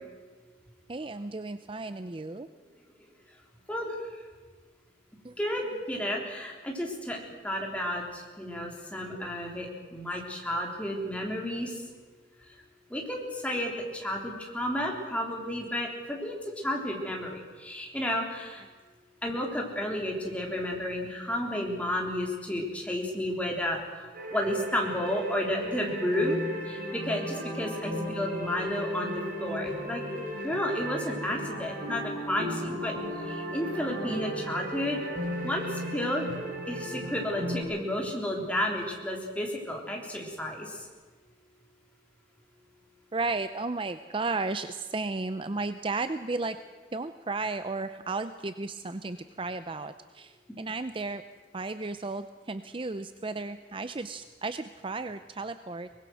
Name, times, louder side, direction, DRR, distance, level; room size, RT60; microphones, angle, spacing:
voice 1, 0.9-2.5 5.2-5.3 9.2-9.3 43.1-46.6 46.9-51.2 51.5-55.9, right 3 dB, 30° right, 11 dB, 0.6 m, -34 dB
voice 2, 5.4-7.2 7.4-11.7 12.9-16.4 16.6-18.6 19.2-24.0 24.3-29.1 29.4-30.0 30.4-32.9 33.2-35.0 35.4-36.3 36.7-40.8, left 1 dB, 5° left, -1 dB, 3.6 m, -32 dB
sound 1, 24.1-37.6, equal, 50° right, 7.4 m, -35 dB
23.5 x 20.5 x 6.4 m, 1.4 s
head